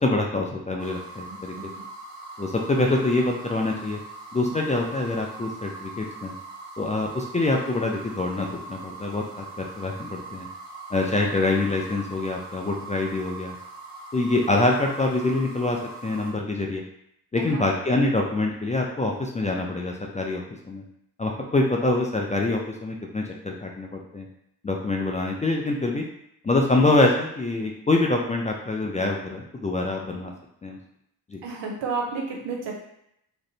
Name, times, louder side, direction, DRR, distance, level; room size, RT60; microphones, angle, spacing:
voice 1, 0.0-1.5 2.4-4.0 4.3-6.3 6.8-9.5 9.8-10.5 10.9-13.6 14.1-16.8 17.3-20.8 21.2-24.3 24.6-26.0 26.4-30.3 30.6-30.8 31.3-31.4, left 2 dB, 20° left, 0 dB, 0.3 m, -25 dB
sound 1, 0.8-16.3, right 3 dB, 40° right, 1.4 m, -41 dB
voice 2, 1.3-1.7 17.4-17.6 31.4-32.8, right 4 dB, 75° right, 0 dB, 0.7 m, -31 dB
2.5 x 2.0 x 2.7 m, 0.76 s
supercardioid pair, 50°, 44 cm